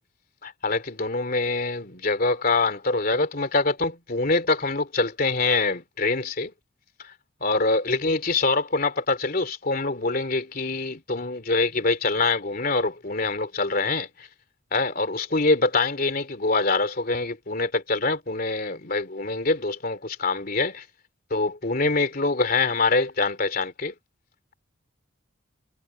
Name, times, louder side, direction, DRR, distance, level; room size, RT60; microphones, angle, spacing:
voice 1, 0.4-6.5 7.4-14.3 14.7-20.8 21.3-23.9, left 3 dB, 50° left, 3.1 m, -24 dB
head